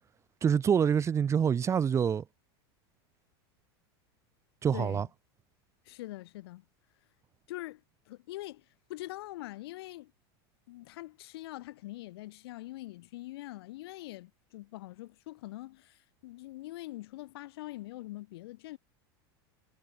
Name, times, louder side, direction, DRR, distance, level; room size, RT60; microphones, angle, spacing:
voice 1, 0.4-2.2 4.6-5.1, right 7 dB, 20° right, 1.6 m, -26 dB
voice 2, 4.7-5.1 5.9-6.6 7.5-7.8 8.1-8.6 8.9-10.1 10.7-18.8, left 17 dB, 75° left, 5.6 m, -43 dB
supercardioid pair, 135°, 13 cm